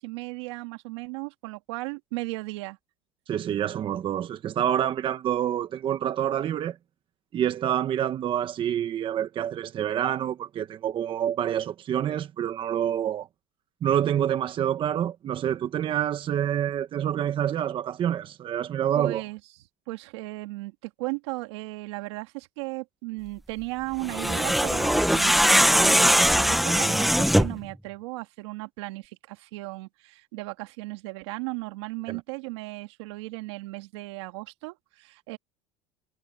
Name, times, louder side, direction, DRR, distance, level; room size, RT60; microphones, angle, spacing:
voice 1, 0.0-2.8 19.0-19.4 19.9-35.4, right 23 dB, 85° right, 2.5 m, -36 dB
voice 2, 3.3-6.8 7.3-13.3 13.8-19.2 32.1-32.2, right 10 dB, 35° right, 1.3 m, -27 dB
sound 1, 24.0-27.6, equal, ahead, 1.0 m, -21 dB
supercardioid pair, 125°, 14 cm